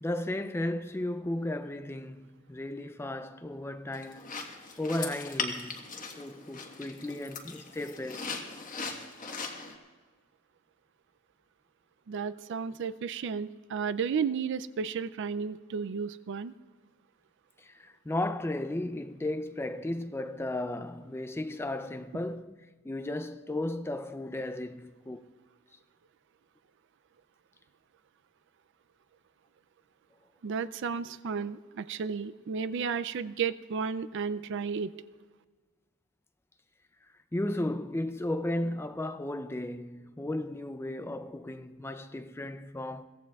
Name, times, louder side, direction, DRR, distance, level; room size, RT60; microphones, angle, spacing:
voice 1, 0.0-5.9 6.2-8.3 17.6-25.3 37.3-43.0, left 1 dB, 10° left, 0.4 m, -35 dB
sound 1, 3.9-9.7, left 4 dB, 40° left, 1.4 m, -39 dB
voice 2, 12.1-16.5 30.4-34.9, right 6 dB, 55° right, 0.4 m, -33 dB
22.5 x 16.5 x 2.4 m
head